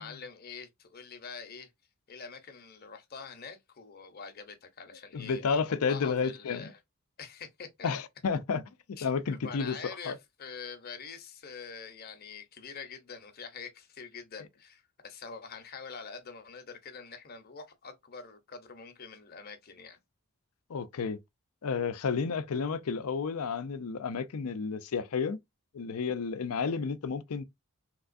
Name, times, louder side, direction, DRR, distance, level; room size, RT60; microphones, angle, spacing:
voice 1, 0.0-1.7 2.1-5.6 5.9-6.8 7.2-7.9 9.0-20.0, left 5 dB, 45° left, 0.7 m, -45 dB
voice 2, 5.1-6.7 7.8-8.6 8.9-9.7 10.1-10.2 20.7-21.2 21.6-25.4 25.7-27.4, left 5 dB, 80° left, 0.5 m, -31 dB
3.4 x 3.0 x 2.5 m
head